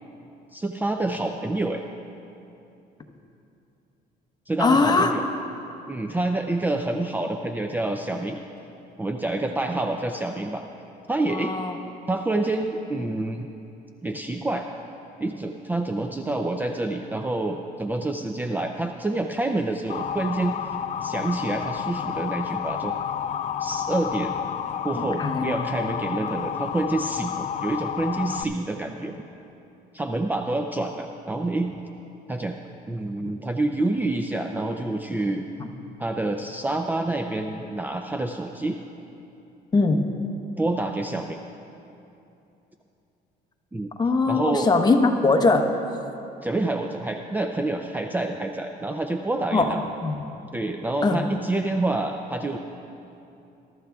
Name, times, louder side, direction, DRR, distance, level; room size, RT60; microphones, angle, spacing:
voice 1, 0.5-1.9 4.5-5.2 5.9-8.4 9.0-10.6 11.1-11.6 12.1-13.5 14.0-14.7 15.2-20.8 21.0-22.9 23.6-24.3 24.8-29.2 29.9-31.8 32.3-32.5 32.9-35.4 36.0-38.8 40.6-41.4 43.7-43.9 44.3-44.7 46.4-49.8 50.5-52.6, right 2 dB, 10° right, 4 dB, 0.4 m, -27 dB
voice 2, 4.6-5.1 11.3-11.7 25.0-25.6 35.6-35.7 39.7-40.1 44.0-45.7 49.5-50.2 51.0-51.2, left 3 dB, 25° left, 5 dB, 1.0 m, -21 dB
Motor vehicle (road) / Siren, 19.9-28.4, left 9 dB, 45° left, 0.4 m, -30 dB
21.0 x 12.5 x 2.4 m, 2.8 s
cardioid pair, 110°, 17 cm